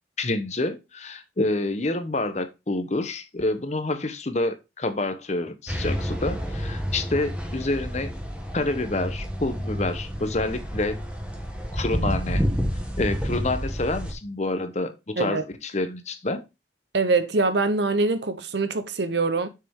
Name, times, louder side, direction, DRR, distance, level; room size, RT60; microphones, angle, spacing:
voice 1, 0.2-8.1 8.5-11.0 11.7-12.4 13.0-16.4, left 2 dB, 35° left, 0.9 m, -28 dB
sound 1, 5.7-14.1, equal, 5° right, 1.4 m, -29 dB
voice 2, 15.2-15.5 16.9-19.5, right 3 dB, 65° right, 0.9 m, -23 dB
6.8 x 6.3 x 3.6 m
head